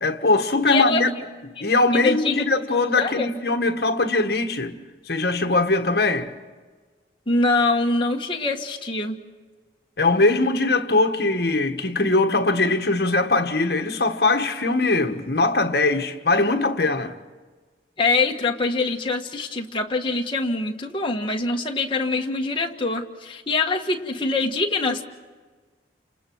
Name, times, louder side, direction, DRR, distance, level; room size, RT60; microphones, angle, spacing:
voice 1, 0.0-1.1 1.6-4.8 5.1-6.3 10.0-17.1, left 3 dB, 60° left, 1.4 m, -21 dB
voice 2, 0.6-1.1 1.6-1.7 1.9-2.5 3.0-3.3 7.3-9.2 18.0-25.0, left 3 dB, 30° left, 1.5 m, -24 dB
29.5 x 27.5 x 4.6 m
head